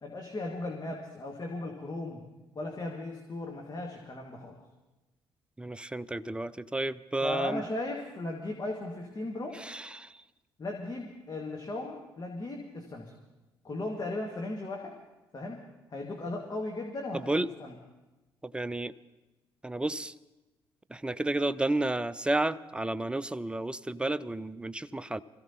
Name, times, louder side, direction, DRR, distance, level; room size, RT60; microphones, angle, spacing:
voice 1, 0.0-2.2 2.6-4.6 7.2-9.6 10.6-13.1 13.6-15.0 15.3-15.6 15.9-17.7, left 2 dB, 35° left, 0 dB, 1.9 m, -37 dB
voice 2, 5.6-7.6 9.6-10.1 17.3-17.5 18.4-18.9 19.6-20.1 20.9-25.2, right 2 dB, 10° right, 18 dB, 0.5 m, -31 dB
25.0 x 15.0 x 2.9 m, 1.1 s
figure-of-eight pair, 45°, 12 cm